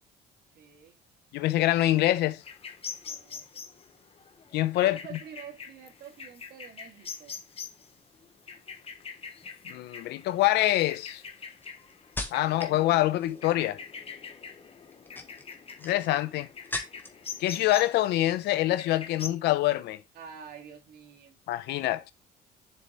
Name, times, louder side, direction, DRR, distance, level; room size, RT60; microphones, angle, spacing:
voice 1, 0.5-1.0 3.0-3.5 4.8-7.4 12.4-12.9 20.2-21.4, right 8 dB, 65° right, 2.5 m, -47 dB
voice 2, 1.3-2.4 4.5-5.2 9.7-11.2 12.3-13.8 15.8-16.5 17.4-20.0 21.5-22.1, left 15 dB, 80° left, 0.8 m, -25 dB
sound 1, 2.4-19.3, left 6 dB, 35° left, 1.3 m, -44 dB
sound 2, 9.3-9.7 10.4-12.8 13.1-13.6 14.8-17.3 17.6-18.2 18.5-18.8, left 2 dB, 10° left, 1.5 m, -40 dB
7.3 x 7.0 x 3.2 m
cardioid pair, 110°, 17 cm